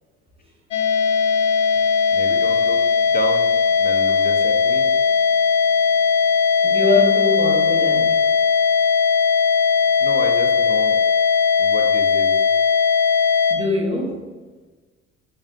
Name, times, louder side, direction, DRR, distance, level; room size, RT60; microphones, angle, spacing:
sound 1, 0.7-13.6, left 5 dB, 80° left, 0.5 m, -18 dB
voice 1, 2.1-2.8 3.1-3.5 3.8-4.9 10.0-11.0 11.6-12.4, left 2 dB, 25° left, 0.7 m, -30 dB
voice 2, 6.6-8.2 13.5-14.2, left 3 dB, 15° right, 1.4 m, -22 dB
5.6 x 3.4 x 2.8 m
figure-of-eight pair, 60°, 37 cm